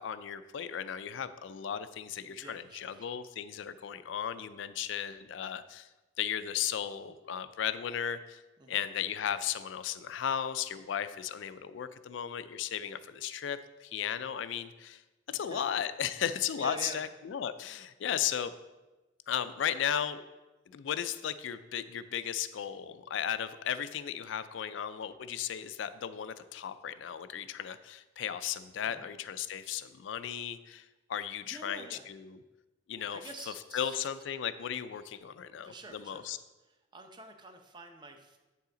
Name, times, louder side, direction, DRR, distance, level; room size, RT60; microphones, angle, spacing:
voice 1, 0.0-5.9 6.2-8.4 8.7-15.0 15.3-18.5 19.3-20.2 20.7-32.3 32.9-33.2 33.7-36.4, left 9 dB, 75° left, 13 dB, 0.4 m, -35 dB
voice 2, 2.3-3.2 8.6-8.8 15.3-15.7 16.6-17.0 28.8-29.1 31.5-32.1 33.1-34.1 35.6-36.4 36.7-38.4, right 3 dB, 25° right, 5 dB, 0.6 m, -48 dB
7.9 x 5.6 x 3.8 m, 1.1 s
head